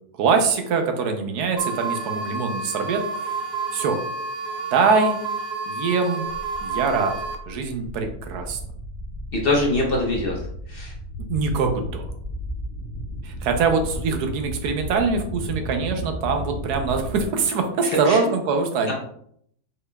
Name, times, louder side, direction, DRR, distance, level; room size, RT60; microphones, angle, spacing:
voice 1, 0.2-3.4 3.7-4.0 4.7-5.2 5.7-6.3 6.6-7.1 7.5-8.6 11.3-12.1 13.2-18.9, right 4 dB, 80° right, 5 dB, 1.3 m, -23 dB
sound 1, 1.6-7.4, right 4 dB, 60° right, 0.7 m, -30 dB
sound 2, 6.3-17.3, equal, 60° left, 0.5 m, -34 dB
voice 2, 9.3-10.4 10.7-10.9 18.1-18.2 18.9-19.0, left 2 dB, 45° left, -1 dB, 0.8 m, -23 dB
5.2 x 4.2 x 2.3 m, 0.68 s
omnidirectional pair, 1.7 m